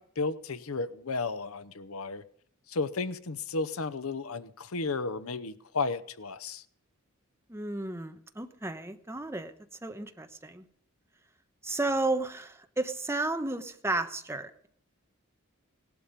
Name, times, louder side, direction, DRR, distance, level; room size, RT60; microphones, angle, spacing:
voice 1, 0.0-2.2 2.7-6.6, left 3 dB, 80° left, 0.9 m, -33 dB
voice 2, 7.5-9.5 9.8-10.6 11.6-14.7, right 2 dB, 10° right, 1.1 m, -33 dB
18.0 x 12.0 x 5.2 m
head